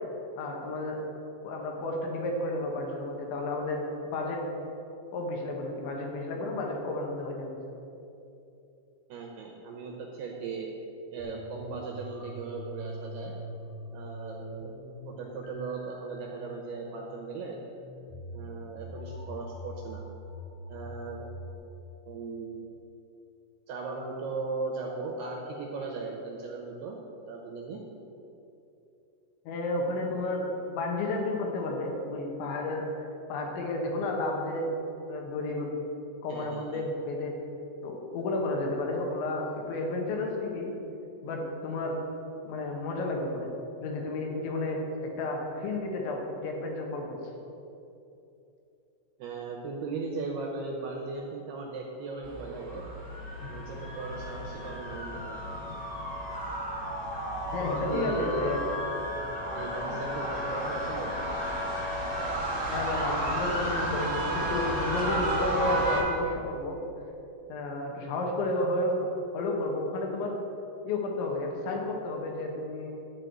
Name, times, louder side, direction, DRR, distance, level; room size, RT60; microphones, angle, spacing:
voice 1, 0.4-1.0 1.4-3.8 4.1-4.4 5.1-7.5 29.5-32.9 33.3-34.8 35.1-35.7 36.2-37.4 37.8-40.7 41.2-42.0 42.5-43.5 43.8-47.2 53.4-53.5 57.5-58.6 62.7-66.8 67.5-70.4 70.9-72.9, left 2 dB, 75° left, 1 dB, 3.4 m, -32 dB
voice 2, 9.1-10.7 11.1-13.3 13.9-14.8 15.1-17.6 18.3-20.0 20.7-21.3 22.1-22.7 23.7-27.0 27.3-27.8 36.3-36.8 49.2-52.8 53.5-55.4 57.6-58.5 59.5-61.2, right 4 dB, 80° right, -1 dB, 2.5 m, -37 dB
sound 1, 11.2-21.5, equal, 55° left, 2.2 m, -43 dB
sound 2, 52.2-66.0, right 1 dB, 35° right, 0.6 m, -32 dB
11.5 x 4.7 x 7.9 m, 2.8 s
omnidirectional pair, 5.5 m